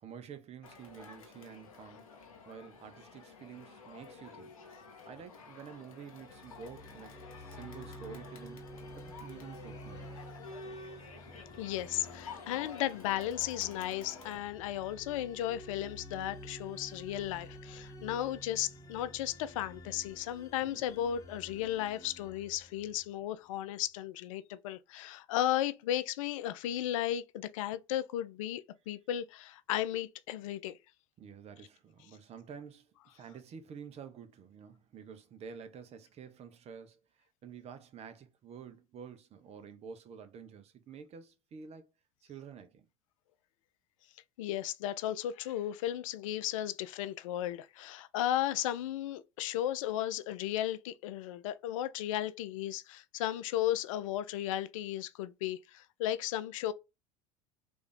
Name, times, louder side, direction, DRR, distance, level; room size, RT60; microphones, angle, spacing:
voice 1, 0.0-4.6 5.0-8.7 9.0-10.2 20.6-20.8 31.2-41.9 42.2-42.9, right 7 dB, 35° right, 0.7 m, -49 dB
Crowd, 0.6-14.4, left 4 dB, 90° left, 0.8 m, -51 dB
sound 1, 6.1-23.3, equal, 20° left, 0.9 m, -51 dB
voice 2, 11.6-30.7 44.4-56.7, left 12 dB, 70° left, 0.4 m, -35 dB
3.3 x 2.6 x 3.3 m
hypercardioid pair, 75°, 17 cm